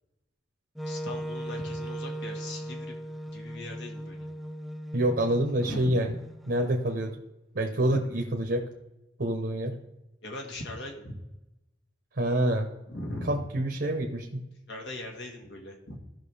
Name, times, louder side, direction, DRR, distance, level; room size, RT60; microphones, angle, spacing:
Wind instrument woodwind instrument, 0.8-6.8, equal, ahead, 0.4 m, -38 dB
voice 1, 0.9-3.0 3.3-4.3 5.6-6.1 10.2-11.2 12.9-13.5 14.7-16.0, left 1 dB, 75° left, 1 dB, 1.8 m, -39 dB
voice 2, 4.9-6.1 6.5-7.1 7.5-8.6 9.2-9.7 12.2-12.7 13.3-14.4, right 1 dB, 60° right, 2 dB, 1.0 m, -27 dB
14.5 x 6.0 x 3.4 m, 0.96 s
head